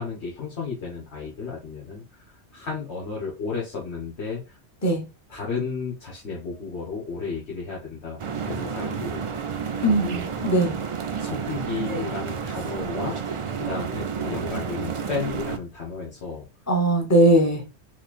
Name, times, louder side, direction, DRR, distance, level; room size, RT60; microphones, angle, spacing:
voice 1, 0.0-4.6 5.3-9.2 9.5-10.2 11.2-13.2 13.6-16.5, left 5 dB, 75° left, 1.5 m, -33 dB
sound 1, 8.2-15.6, right 6 dB, 55° right, 0.3 m, -30 dB
voice 2, 9.8-10.7 16.7-17.6, right 1 dB, 15° left, 0.9 m, -20 dB
3.9 x 3.2 x 2.4 m
omnidirectional pair, 1.1 m